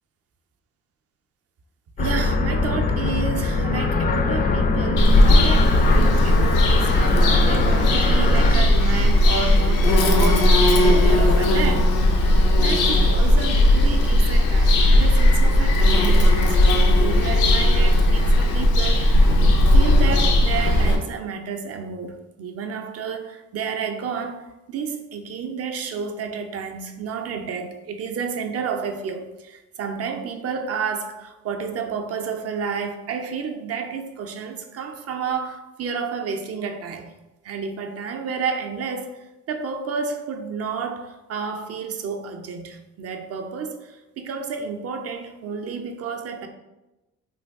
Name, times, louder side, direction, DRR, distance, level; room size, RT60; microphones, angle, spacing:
sound 1, 2.0-8.6, left 3 dB, 30° left, 0.4 m, -23 dB
voice 1, 2.0-11.9 12.6-19.3 19.7-37.1 37.4-46.5, right 5 dB, 55° right, 6 dB, 0.5 m, -31 dB
Bird vocalization bird call bird song, 5.0-21.0, left 1 dB, 90° left, 0.6 m, -17 dB
3.2 x 2.2 x 3.4 m, 1.0 s
cardioid pair, 90°, 30 cm